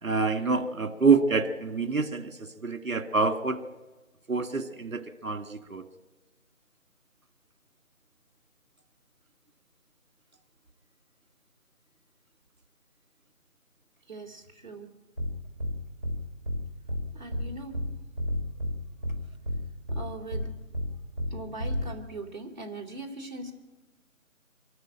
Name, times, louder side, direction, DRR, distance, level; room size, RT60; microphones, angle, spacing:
voice 1, 0.0-3.6 4.3-5.9, right 4 dB, 70° right, 9 dB, 2.3 m, -26 dB
voice 2, 14.1-14.9 17.1-17.8 19.1-19.2 19.9-20.5 21.3-23.5, right 2 dB, 30° right, -2 dB, 2.9 m, -40 dB
sound 1, 15.2-15.3 15.6-15.7 16.0-16.2 16.4-16.6 16.9-17.0 17.3-17.4 17.7-17.9 18.2-18.7 19.0-19.2 19.4-19.6 19.9-20.0 20.3-20.4 20.7-20.9 21.2-21.3 21.6-21.8, left 1 dB, 10° left, 1.8 m, -30 dB
24.5 x 13.0 x 9.0 m, 1.2 s
figure-of-eight pair, 175°, 42 cm